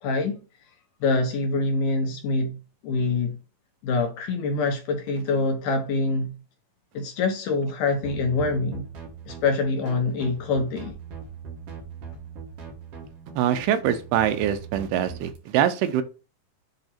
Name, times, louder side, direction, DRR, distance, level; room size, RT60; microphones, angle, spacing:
voice 1, 0.0-0.4 1.0-2.6 2.8-3.4 3.8-6.3 6.9-8.9 9.3-11.0, left 3 dB, 75° left, 1.9 m, -25 dB
sound 1, 8.0-15.4, right 5 dB, 65° right, 1.5 m, -41 dB
voice 2, 13.4-16.0, right 10 dB, 80° right, 2.7 m, -23 dB
7.9 x 2.9 x 4.3 m
omnidirectional pair, 4.8 m